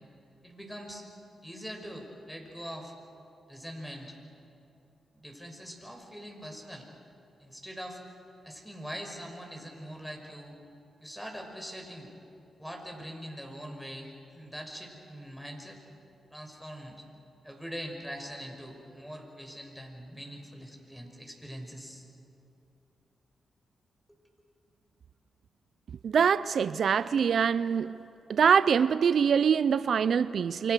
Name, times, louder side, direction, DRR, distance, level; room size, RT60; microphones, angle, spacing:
voice 1, 0.4-1.1 1.4-2.9 3.5-4.2 5.1-6.9 7.4-8.0 8.4-10.5 11.0-12.1 12.6-15.8 16.3-17.0 17.4-22.0, equal, ahead, 6.2 m, -42 dB
voice 2, 26.0-28.0 28.3-30.7, right 7 dB, 70° right, 0.5 m, -24 dB
28.5 x 25.0 x 6.8 m
cardioid pair, 60°, 0 cm